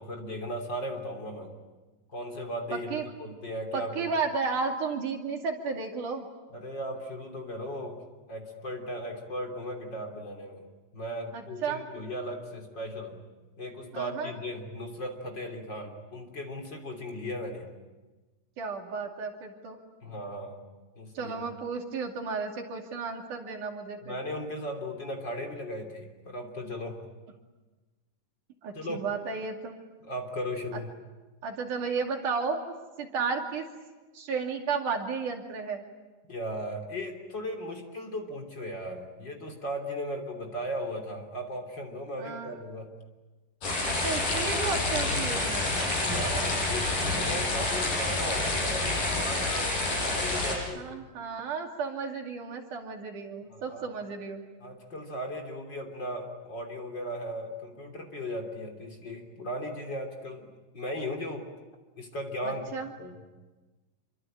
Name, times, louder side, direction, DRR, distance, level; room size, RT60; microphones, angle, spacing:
voice 1, 0.0-1.5 2.1-4.1 6.5-8.0 8.3-10.6 10.9-13.2 13.6-17.7 20.0-20.6 21.0-21.4 24.0-27.0 28.7-29.0 30.0-30.9 36.2-42.9 46.0-49.7 50.0-51.1 53.5-53.8 54.6-61.5 62.0-62.7 63.0-63.2, equal, 35° left, 3 dB, 3.6 m, -37 dB
voice 2, 2.7-3.1 3.7-6.3 11.3-11.8 13.9-14.3 18.6-19.8 21.1-24.2 28.6-29.8 30.7-30.8 31.4-32.6 33.0-33.7 34.1-35.8 42.2-42.6 43.9-45.7 50.8-54.4 62.4-62.9, right 5 dB, 70° right, 2 dB, 4.1 m, -33 dB
sound 1, 43.6-50.6, left 2 dB, 75° left, 8.3 m, -28 dB
27.5 x 24.5 x 8.8 m, 1.2 s
omnidirectional pair, 3.8 m